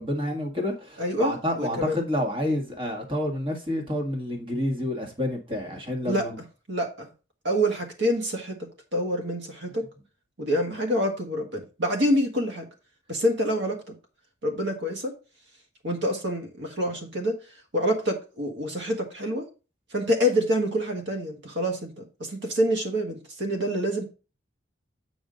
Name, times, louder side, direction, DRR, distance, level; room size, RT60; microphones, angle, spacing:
voice 1, 0.0-6.4, left 1 dB, 25° right, 1.7 m, -29 dB
voice 2, 1.0-2.0 6.0-6.2 6.7-7.1 7.4-9.9 10.4-12.7 13.1-13.9 14.4-15.1 15.8-17.4 17.7-19.5 19.9-24.0, equal, 65° right, 1.6 m, -27 dB
8.5 x 5.2 x 3.9 m
head